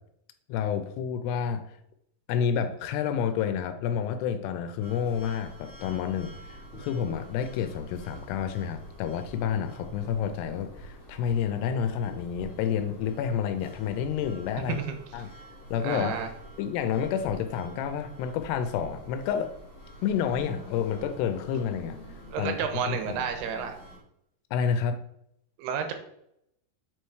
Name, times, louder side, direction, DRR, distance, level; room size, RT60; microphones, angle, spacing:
voice 1, 0.5-1.6 2.3-14.8 15.1-15.3 15.7-16.2 16.6-19.5 20.0-22.0 22.4-23.2 24.5-25.0, left 8 dB, 85° left, 9 dB, 2.7 m, -29 dB
sound 1, 4.8-24.0, equal, 30° left, 1.5 m, -47 dB
voice 2, 15.8-16.3 22.3-23.7 25.6-25.9, right 7 dB, 80° right, 7 dB, 2.9 m, -31 dB
7.5 x 4.5 x 4.7 m, 0.75 s
omnidirectional pair, 4.8 m